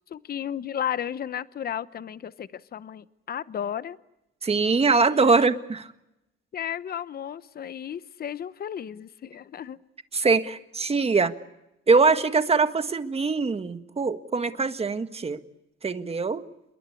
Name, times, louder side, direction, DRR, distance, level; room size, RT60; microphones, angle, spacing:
voice 1, 0.1-4.0 5.1-5.6 6.5-9.8, left 9 dB, 50° left, 15 dB, 0.9 m, -34 dB
voice 2, 4.4-5.9 10.1-11.3 11.9-15.4 15.8-16.4, right 4 dB, 30° right, 9 dB, 1.7 m, -22 dB
28.5 x 22.0 x 8.4 m, 0.90 s
cardioid pair, 90°, 20 cm